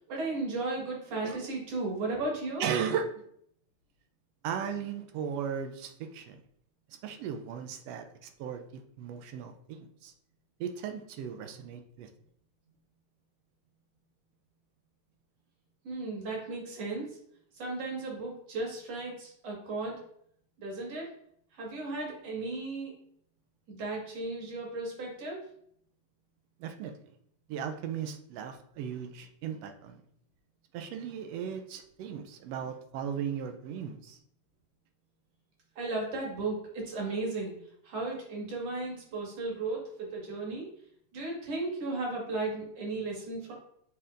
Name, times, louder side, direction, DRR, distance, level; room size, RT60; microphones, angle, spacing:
voice 1, 0.1-2.6 15.8-17.2 17.6-20.0 20.6-21.1 21.5-22.9 23.7-25.4 35.8-37.5 37.8-40.7 41.1-43.5, right 3 dB, 60° right, -2 dB, 2.7 m, -35 dB
voice 2, 2.6-3.2 4.4-6.4 6.9-10.1 10.6-12.1 26.6-27.0 27.5-30.0 30.7-34.2, right 7 dB, 75° right, 7 dB, 1.5 m, -36 dB
8.8 x 4.3 x 2.5 m, 0.68 s
omnidirectional pair, 3.3 m